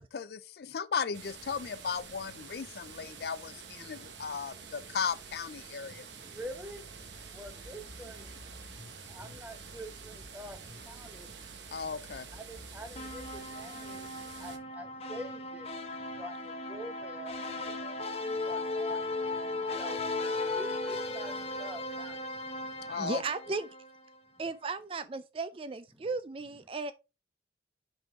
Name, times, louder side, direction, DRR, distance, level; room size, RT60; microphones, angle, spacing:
voice 1, 0.0-6.1 11.7-12.3 22.9-23.2, left 6 dB, 60° left, 0.4 m, -36 dB
sound 1, 1.1-14.6, right 5 dB, 85° right, 1.1 m, -48 dB
voice 2, 5.8-6.9 7.2-11.8 12.3-23.1 23.5-23.6, equal, 10° right, 0.9 m, -47 dB
sound 2, 6.4-13.4, equal, 10° left, 2.8 m, -53 dB
sound 3, 13.0-24.2, left 2 dB, 35° left, 0.9 m, -36 dB
voice 3, 22.9-23.7 24.4-26.9, right 4 dB, 30° right, 0.3 m, -35 dB
6.1 x 5.3 x 3.5 m
head